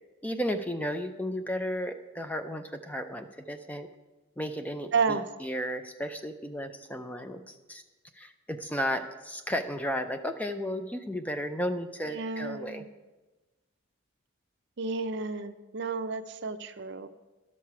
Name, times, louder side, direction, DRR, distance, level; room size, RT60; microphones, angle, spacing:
voice 1, 0.2-3.9 4.4-7.8 8.1-12.8, equal, 5° left, 7 dB, 0.4 m, -34 dB
voice 2, 4.9-5.2 12.1-12.9 14.8-17.1, right 4 dB, 55° right, 10 dB, 0.5 m, -31 dB
12.0 x 6.5 x 5.8 m, 1.2 s
head